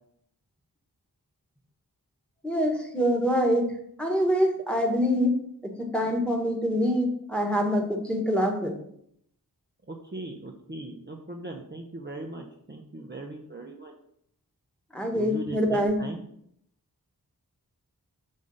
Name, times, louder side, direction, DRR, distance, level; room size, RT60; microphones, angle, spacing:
voice 1, 2.4-3.7 4.0-5.4 5.8-8.8 14.9-16.0, equal, 5° left, 1 dB, 1.3 m, -25 dB
voice 2, 9.9-13.9 15.1-16.2, right 2 dB, 30° right, 0 dB, 0.8 m, -39 dB
6.4 x 3.6 x 5.4 m, 0.69 s
wide cardioid pair, 65°, 37 cm